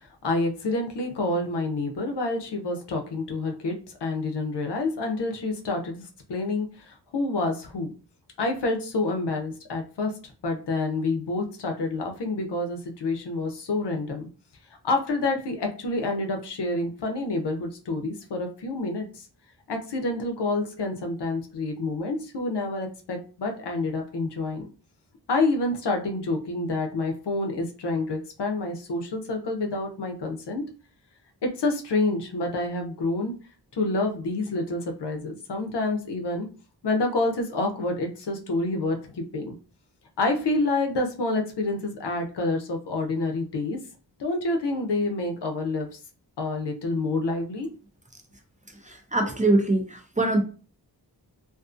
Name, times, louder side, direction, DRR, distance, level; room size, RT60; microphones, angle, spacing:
voice 1, 0.2-7.9 8.4-10.1 10.4-14.3 14.8-19.3 19.7-24.7 25.3-30.6 31.4-33.3 33.7-36.5 36.8-39.5 40.2-43.8 44.2-45.9 46.4-47.7, left 2 dB, 75° left, 3 dB, 0.6 m, -28 dB
voice 2, 48.8-50.4, right 2 dB, 20° right, 3 dB, 0.4 m, -23 dB
2.5 x 2.4 x 2.4 m, 0.37 s
wide cardioid pair, 85°, 42 cm